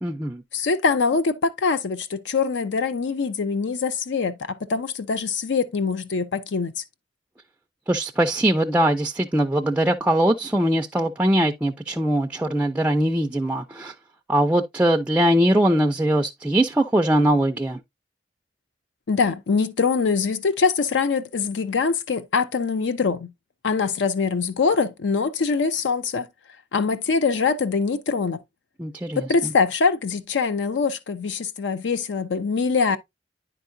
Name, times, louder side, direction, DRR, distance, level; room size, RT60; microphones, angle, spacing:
voice 1, 0.0-0.4 7.9-13.9 14.3-17.8 28.8-29.2, right 1 dB, 10° right, 0.3 m, -21 dB
voice 2, 0.5-6.8 19.1-23.3 23.6-26.3 26.7-28.4 29.2-33.0, left 5 dB, 85° left, 0.5 m, -23 dB
9.7 x 4.6 x 2.5 m
head